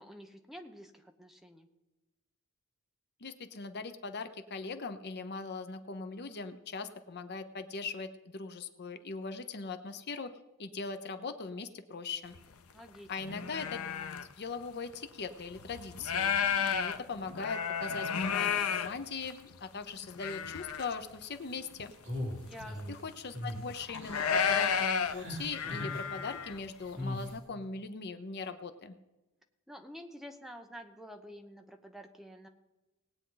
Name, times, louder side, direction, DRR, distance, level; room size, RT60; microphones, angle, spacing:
voice 1, 0.0-1.7 12.7-13.4 22.4-22.8 29.7-32.5, equal, ahead, 4 dB, 0.9 m, -49 dB
voice 2, 3.2-10.3 10.6-12.3 13.1-14.1 14.4-21.9 22.9-29.0, left 4 dB, 50° left, 9 dB, 0.8 m, -40 dB
sound 1, 12.3-12.4 12.9-14.3 14.9-15.0 15.5-19.5 20.0-21.0 21.2-21.3 21.8-21.9 22.2-22.8 23.5-26.6, left 7 dB, 90° left, 0.6 m, -32 dB
sound 2, 22.0-22.9 23.3-23.6 23.9-24.4 25.1-26.0 26.9-27.3, left 1 dB, 55° right, 3.9 m, -38 dB
19.0 x 8.9 x 3.9 m, 1.0 s
head